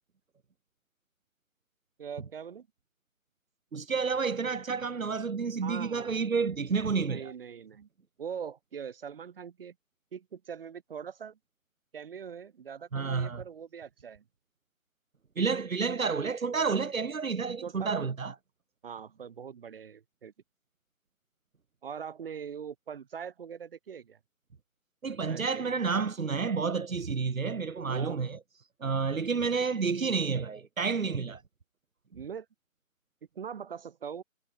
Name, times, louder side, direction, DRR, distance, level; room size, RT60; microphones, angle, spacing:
voice 1, 2.0-2.7 5.6-6.1 6.9-7.9 8.2-9.7 10.1-11.4 11.9-14.2 17.6-18.1 18.8-20.3 21.8-24.2 25.1-25.7 27.8-28.3 32.1-32.5 33.3-34.2, right 7 dB, 40° right, 6.2 m, -42 dB
voice 2, 3.7-7.3 12.9-13.4 15.4-18.3 25.0-28.4 28.8-31.4, right 5 dB, 75° right, 3.0 m, -30 dB
hypercardioid pair, 165°, 41 cm